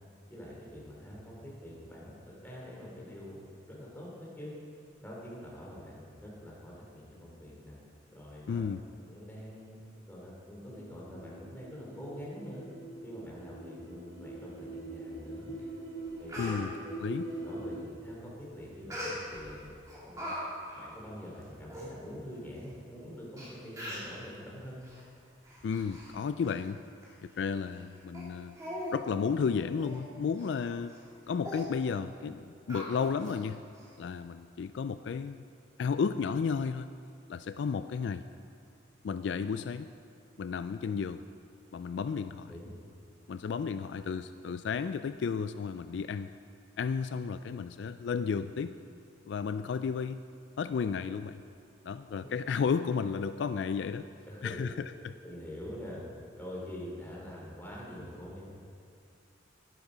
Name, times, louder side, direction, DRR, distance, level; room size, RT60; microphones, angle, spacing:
voice 1, 0.3-4.5 5.0-7.8 8.1-8.7 9.1-9.8 10.1-12.6 13.0-15.5 16.2-16.7 17.4-19.7 20.0-20.3 20.8-24.9 42.5-42.7 52.2-52.3 54.2-54.7 55.2-56.0 56.3-58.5, equal, 10° left, -5 dB, 3.0 m, -45 dB
voice 2, 8.5-8.8 16.4-16.7 17.0-17.3 25.6-26.8 27.2-28.6 28.9-30.9 31.3-33.6 34.0-35.4 35.8-36.9 37.3-38.2 39.0-39.9 40.4-41.2 41.7-42.5 43.3-46.3 46.8-48.8 49.2-50.2 50.6-51.4 51.8-54.0 54.4-54.7 55.0-55.1, left 6 dB, 70° left, 12 dB, 0.3 m, -33 dB
sound 1, 10.7-17.8, right 2 dB, 85° right, 3.5 m, -43 dB
Speech, 15.6-15.7 16.0-16.6 18.9-19.5 19.9-20.4 20.7-20.9 21.4-21.5 21.7-21.9 22.6-22.7 23.4-23.5 23.8-24.1 24.8-25.0 25.4-26.1 26.4-26.6 27.0-27.1 27.7-27.8 28.1-28.3 28.6-29.0 29.3-29.4 29.8-30.0 30.4-30.5 30.9-31.1 31.4-31.6 32.7-33.4 33.7-33.8, left 1 dB, 20° right, 3.1 m, -41 dB
12.0 x 10.5 x 5.0 m, 2.6 s
head